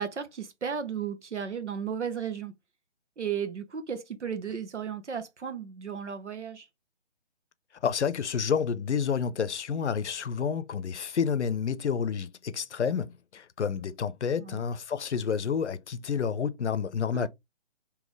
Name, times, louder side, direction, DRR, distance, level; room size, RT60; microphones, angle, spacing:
voice 1, 0.0-2.5 3.2-6.7 14.4-14.6 17.1-17.3, right 7 dB, 85° right, 1.0 m, -34 dB
voice 2, 7.8-17.3, left 6 dB, 75° left, 0.6 m, -29 dB
3.9 x 2.9 x 3.1 m
hypercardioid pair, 155°, 34 cm